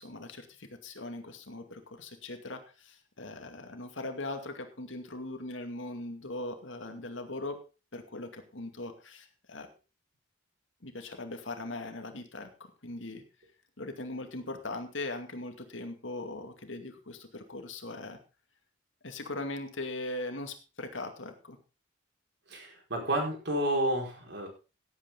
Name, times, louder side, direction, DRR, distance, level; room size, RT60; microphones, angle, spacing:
voice 1, 0.0-7.6 7.9-9.7 10.8-12.5 12.8-13.2 13.8-18.2 19.0-21.6, left 2 dB, 75° left, 6 dB, 2.3 m, -40 dB
voice 2, 22.5-24.5, right 1 dB, 65° right, 1 dB, 5.1 m, -30 dB
16.5 x 8.8 x 3.8 m, 0.32 s
head